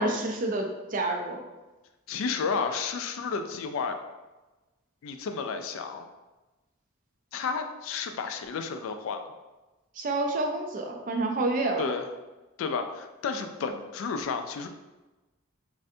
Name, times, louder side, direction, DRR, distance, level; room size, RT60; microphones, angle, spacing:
voice 1, 0.0-1.4 10.0-11.9, right 2 dB, 40° right, 3 dB, 0.4 m, -28 dB
voice 2, 2.1-4.0 5.0-6.1 7.3-9.3 11.8-12.0 12.6-14.7, left 5 dB, 70° left, 6 dB, 0.3 m, -32 dB
3.2 x 2.5 x 2.6 m, 1.1 s
head